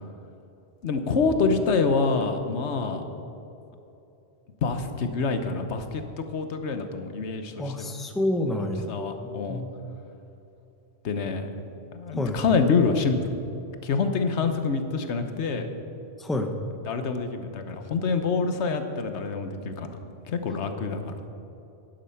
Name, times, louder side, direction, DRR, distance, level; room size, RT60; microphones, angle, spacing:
voice 1, 0.8-3.0 4.6-7.9 8.6-9.6 11.0-11.5 11.9-13.3 13.8-15.7 16.9-20.0 20.3-21.2, left 4 dB, 90° left, 8 dB, 1.2 m, -26 dB
voice 2, 7.6-8.9 9.2-9.7 12.2-12.4 16.2-16.5, left 1 dB, ahead, 4 dB, 0.7 m, -28 dB
11.0 x 10.5 x 5.7 m, 2.9 s
omnidirectional pair, 1.1 m